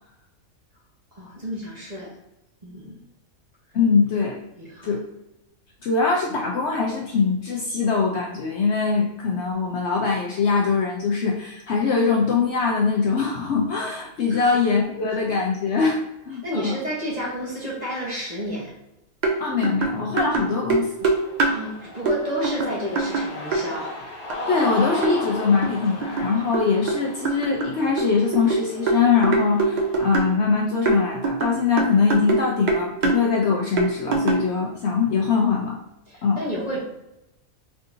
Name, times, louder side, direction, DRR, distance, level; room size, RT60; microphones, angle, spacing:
voice 1, 1.1-2.1 2.6-3.0 4.6-5.0 14.3-14.5 16.4-18.7 21.5-23.9 36.1-36.8, equal, 30° right, -6 dB, 1.1 m, -31 dB
voice 2, 3.7-4.4 4.8-5.0 5.8-16.0 16.3-16.8 19.4-20.9 24.5-35.8 36.2-36.4, left 5 dB, 60° left, -1 dB, 0.8 m, -22 dB
sound 1, 19.2-19.4 19.6-21.6 22.1-22.2 22.4-23.6 24.3-24.4 25.0-25.2 25.6-27.0 27.2-30.4 30.9-32.4 32.7-33.2 33.8-34.5, right 3 dB, 60° right, 0.4 m, -23 dB
Cheering, 21.0-30.2, left 1 dB, 25° left, 0.7 m, -36 dB
3.8 x 3.5 x 2.7 m, 0.88 s
omnidirectional pair, 1.5 m